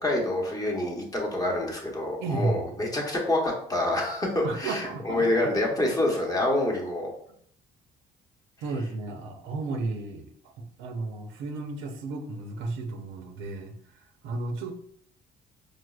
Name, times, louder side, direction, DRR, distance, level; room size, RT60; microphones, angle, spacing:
voice 1, 0.0-7.1, left 1 dB, 20° left, -1 dB, 0.8 m, -27 dB
voice 2, 2.2-2.7 4.4-5.7 8.6-14.7, right 3 dB, 85° right, 4 dB, 0.5 m, -33 dB
4.7 x 2.0 x 2.3 m, 0.65 s
cardioid pair, 110°, 20 cm